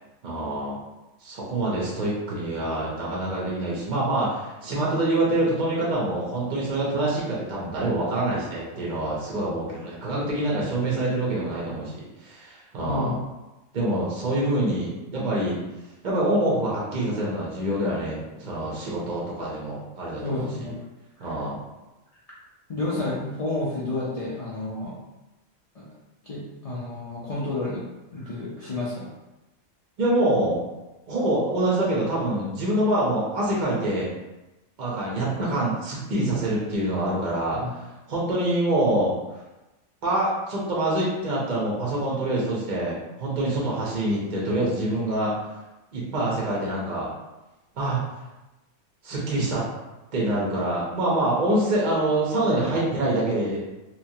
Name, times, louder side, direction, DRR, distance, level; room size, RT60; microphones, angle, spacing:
voice 1, 0.2-0.8 1.2-13.2 13.7-15.6 16.0-20.7 21.2-21.6 30.0-30.6 31.1-34.1 34.8-39.1 40.0-45.3 45.9-47.1 47.7-48.0 49.0-49.7 50.1-53.6, right 1 dB, 45° right, -5 dB, 0.7 m, -25 dB
voice 2, 12.8-13.2 20.2-20.8 21.2-21.4 22.7-24.9 25.8-25.9 26.2-27.8 28.1-29.1 37.5-37.7, left 2 dB, 70° left, -8 dB, 0.3 m, -30 dB
3.0 x 2.1 x 2.7 m, 1.0 s
omnidirectional pair, 1.4 m